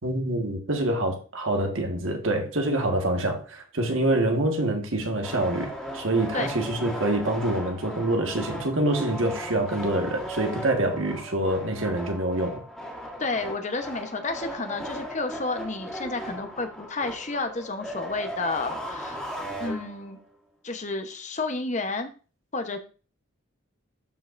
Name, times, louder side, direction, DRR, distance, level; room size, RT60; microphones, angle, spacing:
voice 1, 0.0-12.6, right 1 dB, 75° right, 1.6 m, -26 dB
sound 1, 5.2-20.2, equal, 5° left, 2.2 m, -37 dB
voice 2, 13.2-19.2 19.6-20.2 20.6-22.1 22.5-22.8, left 3 dB, 35° left, 0.9 m, -31 dB
12.5 x 5.5 x 2.6 m
head